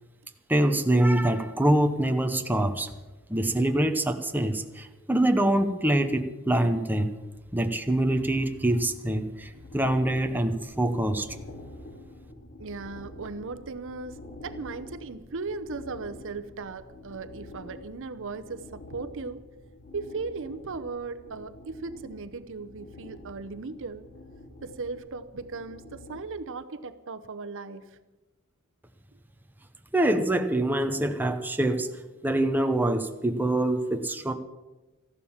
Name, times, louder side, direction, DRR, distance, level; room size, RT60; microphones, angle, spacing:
voice 1, 0.5-2.9 3.3-7.1 7.5-11.3 29.9-31.9 32.2-34.3, right 1 dB, 10° right, 6 dB, 0.8 m, -25 dB
sound 1, 9.4-26.2, left 1 dB, 45° left, 2.2 m, -47 dB
voice 2, 12.6-19.4 19.9-24.0 24.6-28.0, right 4 dB, 60° right, 11 dB, 0.8 m, -37 dB
14.5 x 11.5 x 7.2 m, 1.1 s
head